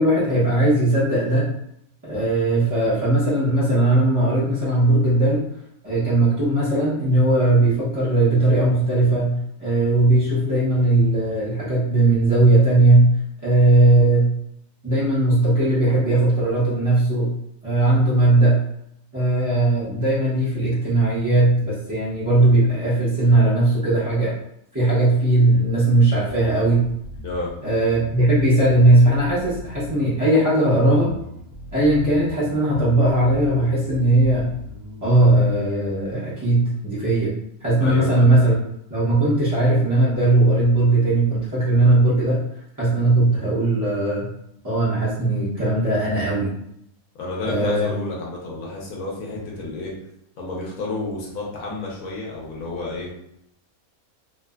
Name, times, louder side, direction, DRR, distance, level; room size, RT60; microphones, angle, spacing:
voice 1, 0.0-1.4 2.0-5.4 5.8-13.1 13.4-14.3 14.8-17.3 17.6-18.6 19.1-24.4 24.7-26.8 27.6-31.1 31.7-34.5 35.0-37.3 37.6-38.5 38.9-42.4 42.8-44.3 44.6-46.5 47.4-47.9, right 2 dB, 20° right, -11 dB, 0.5 m, -18 dB
Bass guitar, 26.3-35.9, left 2 dB, 75° right, 1.1 m, -39 dB
voice 2, 37.8-38.2 47.2-49.9 50.4-53.1, left 2 dB, 70° left, -4 dB, 1.2 m, -30 dB
3.0 x 2.0 x 2.3 m, 0.75 s
omnidirectional pair, 1.6 m